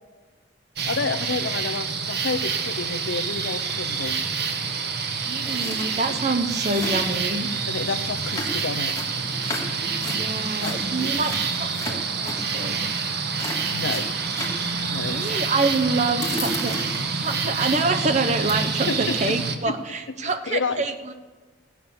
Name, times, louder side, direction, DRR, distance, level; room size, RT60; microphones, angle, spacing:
voice 1, 0.8-4.2 6.1-6.2 7.7-9.0 10.6-11.2 13.7-14.1 14.9-15.3 18.9-19.2 19.7-19.8 20.2-20.8, left 4 dB, 70° left, 12 dB, 0.7 m, -30 dB
sound 1, 0.8-19.6, right 5 dB, 55° right, 1.2 m, -27 dB
voice 2, 5.2-7.5 10.0-12.8 15.1-21.1, right 3 dB, 40° right, 7 dB, 0.9 m, -26 dB
sound 2, 5.4-5.9 6.2-6.3 6.5-7.3 8.3-10.2 10.6-12.4 12.9-13.1 13.4-14.6 16.0-17.5 17.9-18.1 18.5-19.0, left 1 dB, 15° left, 2.7 m, -34 dB
16.5 x 8.6 x 7.0 m, 1.3 s
head